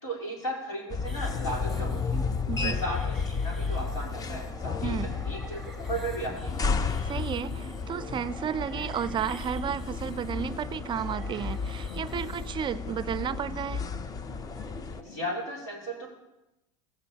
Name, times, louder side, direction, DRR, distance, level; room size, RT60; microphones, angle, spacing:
voice 1, 0.0-2.2 2.6-6.6 15.0-16.1, right 1 dB, 85° left, -3 dB, 3.8 m, -35 dB
sound 1, 0.9-15.0, left 5 dB, 25° left, 0.6 m, -33 dB
sound 2, 1.0-12.5, right 1 dB, ahead, 1.2 m, -46 dB
voice 2, 2.5-2.8 4.8-5.1 7.0-13.9, right 8 dB, 30° right, 17 dB, 0.4 m, -32 dB
sound 3, 5.8-15.5, left 1 dB, 60° left, 2.4 m, -47 dB
16.0 x 8.1 x 2.9 m, 0.94 s
hypercardioid pair, 80°, 16 cm